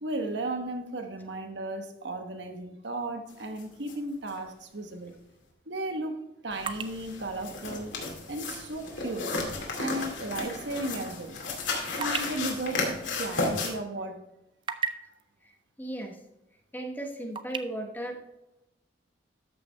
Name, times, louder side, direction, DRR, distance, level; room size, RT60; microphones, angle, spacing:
voice 1, 0.0-5.1 5.7-6.2 6.4-7.9 8.3-9.3 9.8-11.4 12.0-14.2 15.1-15.2, right 2 dB, 75° right, 6 dB, 1.2 m, -35 dB
sound 1, 3.6-3.7 3.9-4.0 4.3-4.4 6.5-13.7, left 3 dB, 90° left, 2.4 m, -33 dB
sound 2, 5.6-9.7 10.0-10.1 10.7-13.9 14.2-15.2 16.2-16.3 16.7-17.6, right 6 dB, 25° right, 0.5 m, -38 dB
voice 2, 15.8-16.2 16.7-18.2, right 1 dB, 10° left, 2 dB, 1.1 m, -36 dB
13.0 x 5.9 x 3.4 m, 0.92 s
head